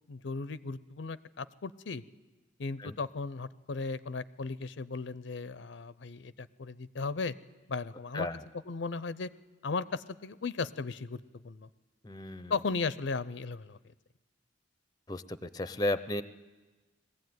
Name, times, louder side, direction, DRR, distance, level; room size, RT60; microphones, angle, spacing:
voice 1, 0.1-2.0 2.6-7.3 7.7-8.3 8.7-9.3 9.6-11.7 12.5-13.8, left 4 dB, 70° left, 17 dB, 0.6 m, -36 dB
voice 2, 12.0-12.5 15.1-16.2, left 1 dB, 20° left, 14 dB, 0.6 m, -34 dB
21.0 x 15.0 x 9.4 m, 1.2 s
head